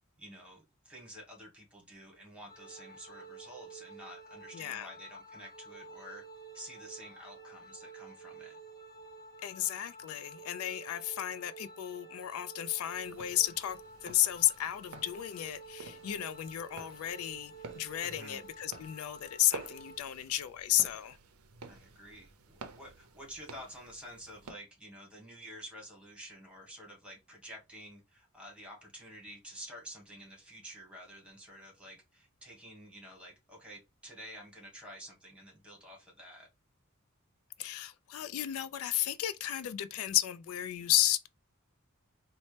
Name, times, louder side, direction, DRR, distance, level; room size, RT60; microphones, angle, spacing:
voice 1, 0.2-6.2 6.5-8.6 18.0-18.4 21.7-36.5, equal, 5° right, 1.2 m, -50 dB
sound 1, 2.5-20.0, right 3 dB, 15° left, 1.0 m, -51 dB
voice 2, 4.5-4.9 9.4-21.2 37.6-41.3, left 13 dB, 75° left, 0.3 m, -33 dB
sound 2, 12.9-24.5, right 4 dB, 80° right, 0.5 m, -51 dB
4.1 x 2.0 x 3.2 m
head